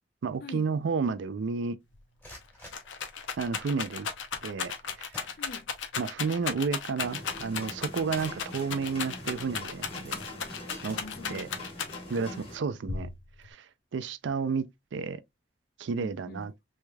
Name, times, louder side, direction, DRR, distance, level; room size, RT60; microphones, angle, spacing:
voice 1, 0.2-1.8 3.4-4.1 4.4-4.7 5.0-5.2 6.0-10.2 10.8-11.0 11.3-11.5 12.1-13.1 13.4-13.7 13.9-14.6 14.9-15.2 15.8-16.5, right 5 dB, 80° right, 0.4 m, -31 dB
Rattle, 1.9-2.0 2.3-12.2 12.9-13.5, left 6 dB, 90° left, 0.7 m, -35 dB
sound 1, 2.0-3.7 4.7-4.8 5.1-6.0 6.4-6.5 7.0-7.1 7.7-9.5 10.2-10.4 10.8-11.7, equal, 10° left, 1.5 m, -52 dB
voice 2, 5.4-5.7 10.3-10.4 10.9-12.0 12.3-12.5 16.0-16.5, left 3 dB, 50° left, 0.4 m, -45 dB
sound 2, 7.0-12.6, left 1 dB, 30° left, 1.4 m, -43 dB
3.5 x 3.2 x 2.2 m
head